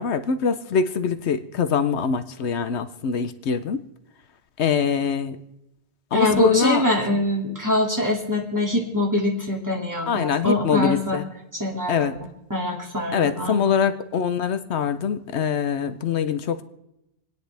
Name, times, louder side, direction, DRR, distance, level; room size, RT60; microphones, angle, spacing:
voice 1, 0.0-3.8 4.6-5.4 6.1-6.8 10.1-11.2 11.9-12.1 13.1-16.6, left 6 dB, 80° left, 10 dB, 1.0 m, -23 dB
voice 2, 6.1-11.2 11.6-12.2 12.5-13.8, left 1 dB, 15° right, -1 dB, 2.3 m, -24 dB
28.5 x 9.7 x 3.4 m, 0.90 s
omnidirectional pair, 1.1 m